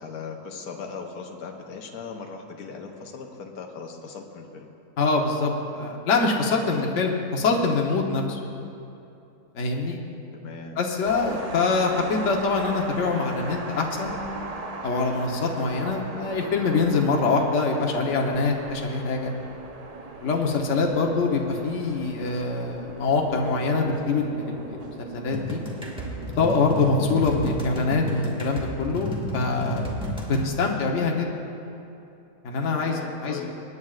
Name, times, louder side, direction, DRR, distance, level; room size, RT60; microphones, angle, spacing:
voice 1, 0.0-4.7 10.3-10.9 32.7-33.6, left 5 dB, 75° left, 2 dB, 1.4 m, -38 dB
voice 2, 5.0-8.4 9.5-10.0 10.8-14.1 14.8-19.3 20.2-25.6 26.4-29.8 30.3-31.3 32.4-33.4, left 3 dB, 55° left, 1 dB, 1.3 m, -24 dB
sound 1, 11.0-27.7, right 3 dB, 70° right, 0.3 m, -39 dB
sound 2, 25.3-30.5, left 1 dB, 5° right, 1.3 m, -31 dB
25.0 x 9.7 x 2.4 m, 2.8 s
omnidirectional pair, 1.7 m